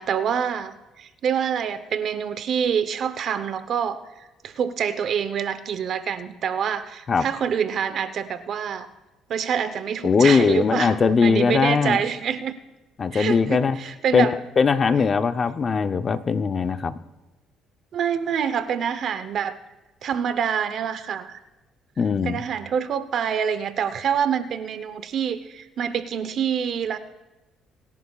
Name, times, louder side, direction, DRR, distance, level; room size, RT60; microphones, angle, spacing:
voice 1, 0.0-8.9 9.3-12.6 13.1-14.4 17.9-19.6 20.0-21.4 22.2-27.0, right 8 dB, 60° right, 12 dB, 0.9 m, -26 dB
voice 2, 10.0-12.0 13.0-13.8 14.1-17.0 22.0-22.4, left 5 dB, 40° left, 10 dB, 0.7 m, -20 dB
26.0 x 11.0 x 2.4 m, 1.1 s
supercardioid pair, 85°, 0 cm